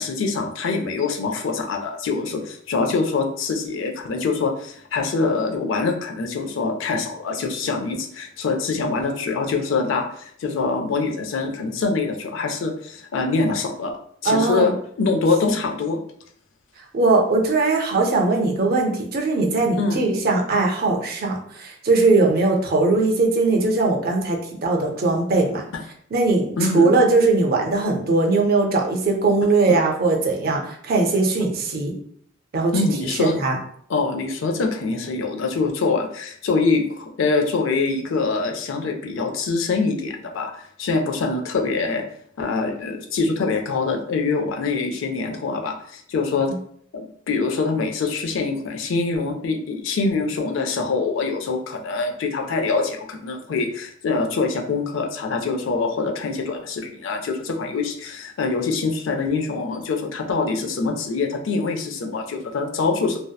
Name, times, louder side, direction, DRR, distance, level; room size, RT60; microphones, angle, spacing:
voice 1, 0.0-13.9 14.2-16.0 19.8-20.0 26.6-26.9 29.7-29.8 32.7-33.4 33.9-42.0 42.4-46.5 46.9-63.2, left 4 dB, 85° left, 3 dB, 0.4 m, -24 dB
voice 2, 14.3-14.7 16.9-25.6 26.1-31.9 32.5-32.7 33.1-33.5, right 3 dB, 50° right, 1 dB, 0.5 m, -20 dB
2.7 x 2.0 x 2.2 m, 0.64 s
head